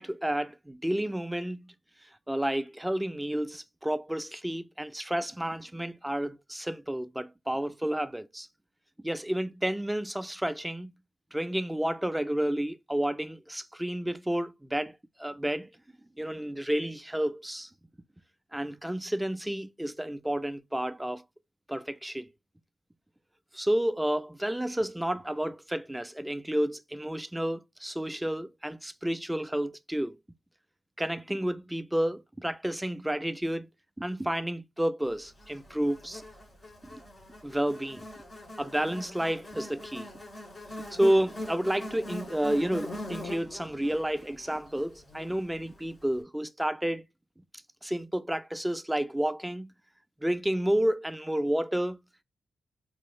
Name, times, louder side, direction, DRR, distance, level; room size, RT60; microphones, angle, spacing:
voice 1, 0.0-1.7 2.3-8.5 9.0-10.9 11.3-15.7 16.2-17.7 18.5-21.2 21.7-22.3 23.5-30.2 31.0-33.7 34.0-36.2 36.9-37.0 37.4-38.1 38.6-40.1 40.9-47.0 47.8-49.7 50.2-52.0, right 1 dB, 5° right, 0.3 m, -30 dB
Buzz, 35.4-45.8, left 1 dB, 35° left, 1.9 m, -42 dB
4.4 x 3.0 x 2.3 m
cardioid pair, 110°, 0 cm